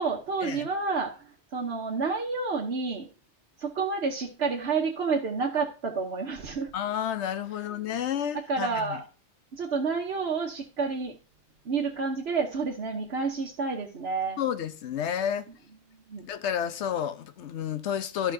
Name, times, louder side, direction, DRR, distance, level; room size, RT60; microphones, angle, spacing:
voice 1, 0.0-3.1 3.6-6.7 8.5-9.0 9.5-11.1 11.6-14.4 16.1-16.3, right 4 dB, 65° right, 1.2 m, -29 dB
voice 2, 6.7-9.0 14.4-15.5 16.2-18.3, left 9 dB, 75° left, 1.0 m, -31 dB
13.5 x 5.6 x 2.6 m
omnidirectional pair, 1.2 m